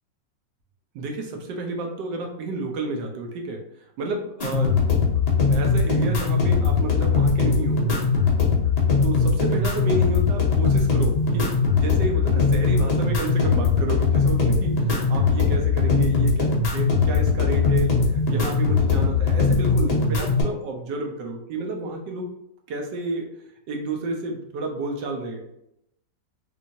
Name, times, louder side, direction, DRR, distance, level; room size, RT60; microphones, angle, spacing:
voice 1, 0.9-3.6 4.0-4.8 5.5-7.8 9.0-22.3 22.7-23.3 23.7-25.4, right 2 dB, 80° right, 2 dB, 1.3 m, -31 dB
sound 1, 4.4-20.4, left 4 dB, 75° left, 0.3 m, -20 dB
3.3 x 3.1 x 2.6 m, 0.79 s
omnidirectional pair, 1.9 m